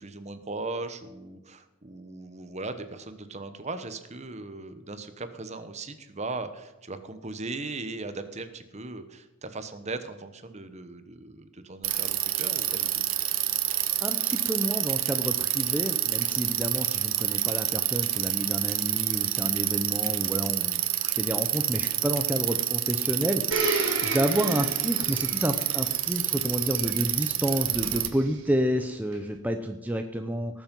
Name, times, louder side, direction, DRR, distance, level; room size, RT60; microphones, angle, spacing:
voice 1, 0.0-13.0, right 3 dB, 35° right, 10 dB, 1.1 m, -38 dB
Bicycle, 11.8-28.1, right 13 dB, 85° right, 1.1 m, -28 dB
voice 2, 14.0-23.7 24.0-30.6, equal, 10° right, 5 dB, 0.6 m, -30 dB
Domestic sounds home sounds, 23.5-28.3 29.1-29.2, right 2 dB, 65° right, 3.4 m, -34 dB
19.0 x 7.4 x 5.4 m, 1.1 s
head